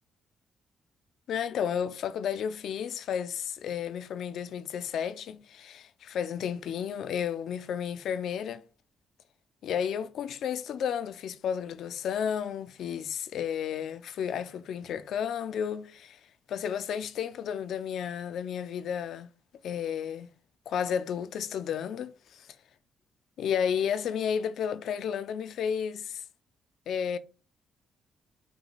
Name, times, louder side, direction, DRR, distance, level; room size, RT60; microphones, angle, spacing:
voice 1, 1.3-8.6 9.6-16.2 16.5-19.3 19.6-20.3 20.7-22.6 23.4-26.2 26.9-27.2, left 8 dB, 70° left, 0.4 m, -32 dB
5.9 x 2.3 x 4.0 m
cardioid pair, 90°, 0 cm